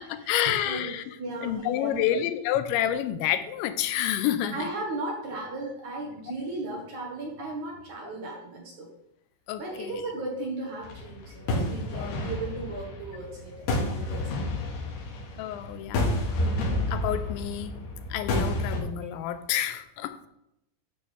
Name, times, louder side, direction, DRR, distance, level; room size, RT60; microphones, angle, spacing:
voice 1, 0.0-1.0 1.4-4.7 9.5-10.0 11.9-12.2 15.4-16.1 16.9-17.7 18.1-20.2, left 11 dB, 90° left, 10 dB, 3.0 m, -29 dB
voice 2, 0.7-2.2 4.5-8.9 9.6-14.6 19.0-19.1, right 2 dB, 60° right, -2 dB, 2.3 m, -36 dB
sound 1, 10.8-18.8, left 1 dB, 70° left, 3.6 m, -30 dB
12.0 x 7.0 x 3.4 m, 0.81 s
omnidirectional pair, 5.1 m